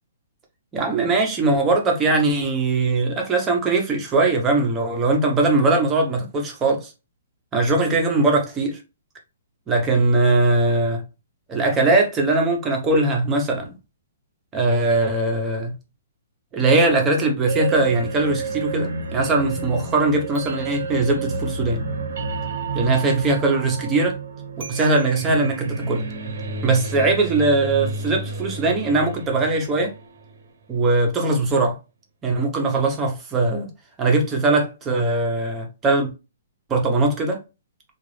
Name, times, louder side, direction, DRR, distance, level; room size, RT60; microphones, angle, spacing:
voice 1, 0.7-6.9 7.5-8.8 9.7-11.0 11.5-13.7 14.5-15.7 16.5-21.8 22.7-24.2 24.7-25.6 25.9-26.1 26.6-29.9 30.7-31.8 32.2-33.7 34.0-36.1 36.7-37.4, right 2 dB, 10° right, 0.7 m, -20 dB
sound 1, 17.5-30.5, right 4 dB, 65° right, 0.9 m, -30 dB
3.8 x 2.3 x 3.1 m
hypercardioid pair, 175°, 0 cm